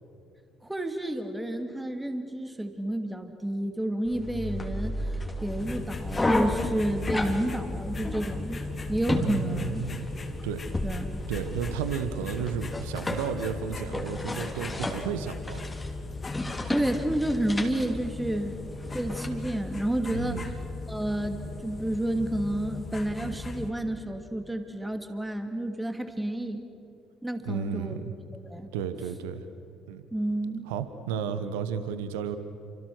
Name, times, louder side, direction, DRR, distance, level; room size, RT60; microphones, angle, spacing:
voice 1, 0.6-5.0 5.4-8.6 8.9-9.8 10.8-11.2 16.7-18.6 18.9-20.5 20.9-26.6 27.2-28.0 28.4-28.7 30.1-30.7, right 1 dB, 10° right, 6 dB, 2.6 m, -30 dB
sound 1, 4.1-19.3, left 1 dB, 15° left, 2.9 m, -34 dB
sound 2, 5.6-23.7, left 3 dB, 35° left, 2.6 m, -38 dB
voice 2, 9.2-10.1 10.4-10.6 11.3-15.6 20.1-20.5 27.4-28.0 28.7-29.5 29.9-30.1 30.7-32.4, right 8 dB, 75° right, 11 dB, 1.2 m, -33 dB
29.5 x 26.0 x 6.4 m, 2.6 s
figure-of-eight pair, 50°, 0 cm